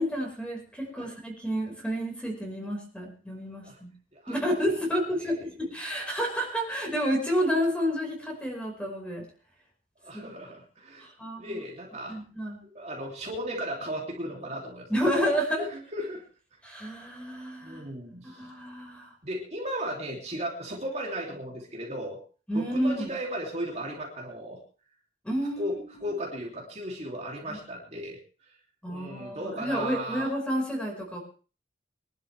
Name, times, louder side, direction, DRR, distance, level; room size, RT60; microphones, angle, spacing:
voice 1, 0.0-3.9 4.3-9.3 10.1-10.2 11.0-11.6 12.1-12.6 14.9-15.7 16.6-17.9 18.2-19.1 22.5-23.1 25.2-26.1 27.5-27.6 28.8-31.2, equal, 5° left, 0 dB, 5.2 m, -30 dB
voice 2, 10.0-11.1 11.4-12.2 12.7-14.9 15.6-16.2 17.6-18.5 19.2-22.2 22.5-24.6 25.6-28.5 28.9-30.3, equal, 40° right, -2 dB, 3.0 m, -36 dB
24.0 x 12.0 x 3.4 m, 0.38 s
head